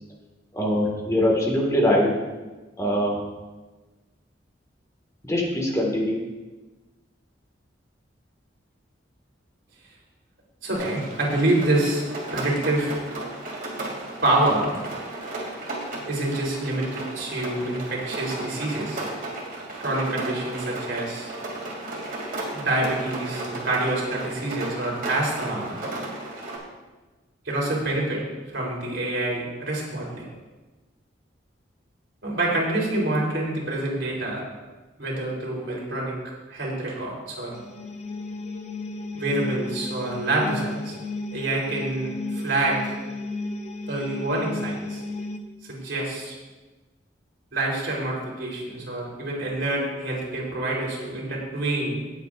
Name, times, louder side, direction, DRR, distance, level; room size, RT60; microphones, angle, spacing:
voice 1, 0.5-2.1 2.8-3.2 5.2-6.2, left 1 dB, 15° left, -1 dB, 1.7 m, -22 dB
voice 2, 10.6-12.0 12.3-13.0 14.2-14.7 16.0-19.1 19.8-21.3 22.5-25.7 27.4-28.2 28.5-30.2 32.2-34.4 35.0-36.2 36.5-37.5 39.2-41.0 41.3-43.0 43.9-45.0 45.6-46.4 47.5-52.0, right 2 dB, 70° right, -3 dB, 3.6 m, -26 dB
Rain, 10.7-26.6, right 2 dB, 50° right, 2.6 m, -34 dB
sound 1, 37.5-45.4, left 3 dB, 35° left, 0.8 m, -34 dB
18.5 x 8.2 x 2.5 m, 1.2 s
head